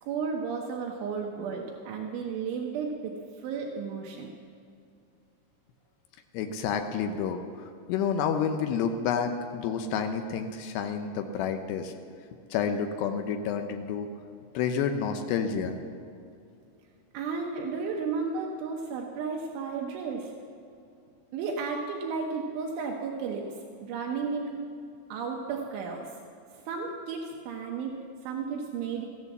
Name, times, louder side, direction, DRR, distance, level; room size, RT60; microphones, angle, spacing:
voice 1, 0.0-4.3 17.1-20.3 21.3-23.5 23.8-24.6 25.1-26.1 26.7-29.1, right 5 dB, 75° right, 1 dB, 3.4 m, -33 dB
voice 2, 6.3-7.4 7.9-11.9 12.5-14.1 14.5-15.8, left 7 dB, 85° left, 6 dB, 2.4 m, -29 dB
15.0 x 11.0 x 7.2 m, 2.5 s
omnidirectional pair, 5.8 m